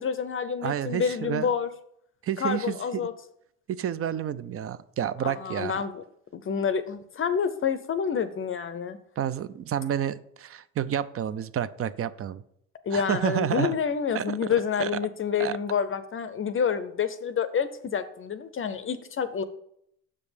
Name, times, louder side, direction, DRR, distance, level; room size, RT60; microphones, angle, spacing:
voice 1, 0.0-1.7 2.4-3.1 5.2-6.0 6.3-9.0 12.9-19.4, left 7 dB, 35° left, 12 dB, 0.6 m, -28 dB
voice 2, 0.6-1.5 2.2-3.0 3.7-5.8 9.2-12.4 12.9-13.7 14.1-14.2 14.8-14.9 15.4-15.6, right 10 dB, 40° right, 16 dB, 0.5 m, -29 dB
6.7 x 5.2 x 5.0 m, 0.72 s
cardioid pair, 90°, 36 cm